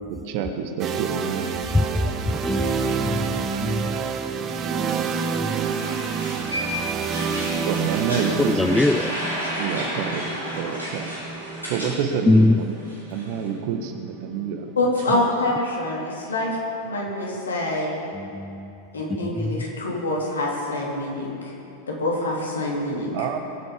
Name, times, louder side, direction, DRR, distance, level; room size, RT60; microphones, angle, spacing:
voice 1, 0.3-1.5 7.6-8.9 9.6-10.2 10.5-11.1 11.7-12.7 13.1-14.6 15.1-15.2 23.1-23.4, right 7 dB, 45° right, 6 dB, 1.3 m, -27 dB
sound 1, 0.8-14.7, right 6 dB, 30° right, 0.9 m, -29 dB
voice 2, 1.7-4.0 4.7-5.6 8.5-9.2 12.3-12.6 18.1-18.7 19.2-19.5, left 2 dB, 5° left, 10 dB, 0.3 m, -23 dB
sound 2, 5.5-12.0 12.2-13.5, equal, 90° left, 4.0 m, -32 dB
voice 3, 14.8-16.5 16.8-18.0 18.9-21.4 21.9-23.3, left 2 dB, 70° left, -3 dB, 3.3 m, -25 dB
21.5 x 8.3 x 5.2 m, 2.8 s
figure-of-eight pair, 90°, 0 cm